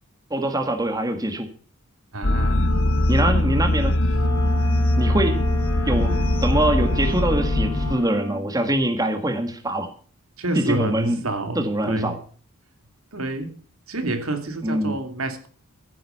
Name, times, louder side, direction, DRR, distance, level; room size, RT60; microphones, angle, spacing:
voice 1, 0.3-1.5 3.1-4.0 5.0-5.4 5.9-6.2 6.4-9.9 10.6-11.2 11.6-12.2 14.6-14.9, right 1 dB, 15° right, 1.7 m, -23 dB
voice 2, 2.1-2.7 10.4-12.2 13.1-13.5 13.9-15.5, right 2 dB, 75° right, 2.6 m, -28 dB
sound 1, 2.2-8.0, left 1 dB, 65° left, 1.5 m, -21 dB
Wind instrument woodwind instrument, 4.1-8.5, right 1 dB, 15° left, 2.6 m, -35 dB
15.5 x 9.3 x 5.6 m
head